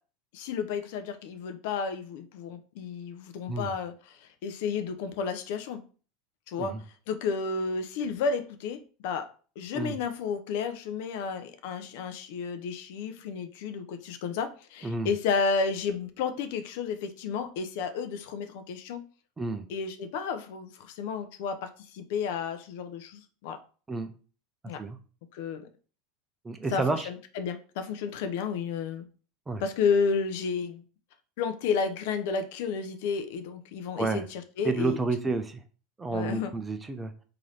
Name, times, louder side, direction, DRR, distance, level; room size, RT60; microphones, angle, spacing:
voice 1, 0.3-5.8 6.5-6.7 7.1-9.3 9.6-19.0 19.7-23.6 24.7-24.8 25.3-25.6 26.7-29.0 29.6-30.8 31.4-35.0 36.1-36.5, left 5 dB, 70° left, 8 dB, 0.6 m, -32 dB
voice 2, 26.4-27.1 29.5-29.6 34.0-34.3 34.6-35.6 36.0-37.1, right 3 dB, 15° right, 8 dB, 0.5 m, -30 dB
3.2 x 2.9 x 3.9 m, 0.38 s
supercardioid pair, 120°, 0 cm